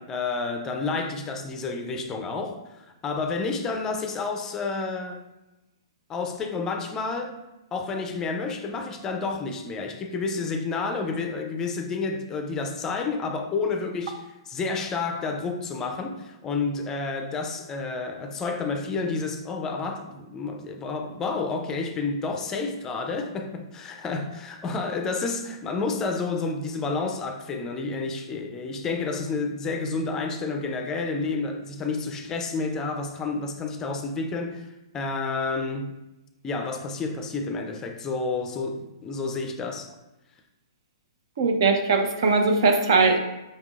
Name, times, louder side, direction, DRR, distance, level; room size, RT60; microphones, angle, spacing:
voice 1, 0.0-5.2 6.1-7.4 7.7-35.9 36.4-39.9, left 4 dB, 20° left, 0.4 m, -30 dB
voice 2, 41.4-43.2, right 4 dB, 60° right, 0.7 m, -20 dB
5.3 x 3.6 x 2.4 m
hypercardioid pair, 130°, 3 cm